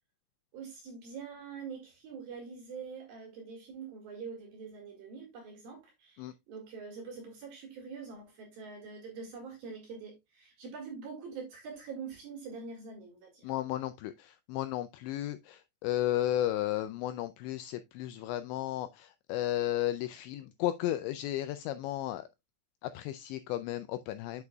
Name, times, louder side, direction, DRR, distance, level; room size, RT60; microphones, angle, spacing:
voice 1, 0.5-13.5, right 5 dB, 55° right, 3.4 m, -44 dB
voice 2, 13.4-22.2 22.8-24.4, left 13 dB, 90° left, 2.5 m, -34 dB
8.4 x 8.2 x 2.3 m
omnidirectional pair, 5.8 m